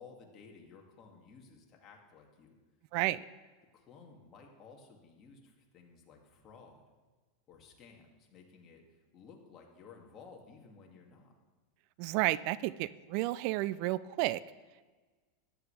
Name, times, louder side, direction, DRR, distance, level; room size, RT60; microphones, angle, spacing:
voice 1, 0.0-2.6 3.7-6.8 7.5-11.3, left 5 dB, 35° left, 1 dB, 2.2 m, -55 dB
voice 2, 2.9-3.2 12.0-14.4, right 17 dB, 55° right, 18 dB, 0.3 m, -31 dB
14.0 x 10.0 x 3.4 m, 1.3 s
hypercardioid pair, 115°, 0 cm